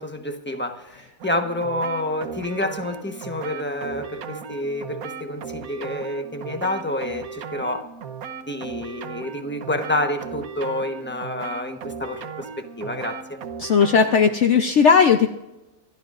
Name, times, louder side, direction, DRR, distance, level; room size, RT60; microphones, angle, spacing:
voice 1, 0.0-7.9 8.4-13.4, left 1 dB, 10° left, 5 dB, 0.9 m, -28 dB
sound 1, 1.2-14.4, right 6 dB, 75° right, 1.4 m, -37 dB
voice 2, 13.6-15.3, left 6 dB, 60° left, 6 dB, 0.9 m, -16 dB
26.5 x 12.5 x 2.5 m, 0.94 s
omnidirectional pair, 1.6 m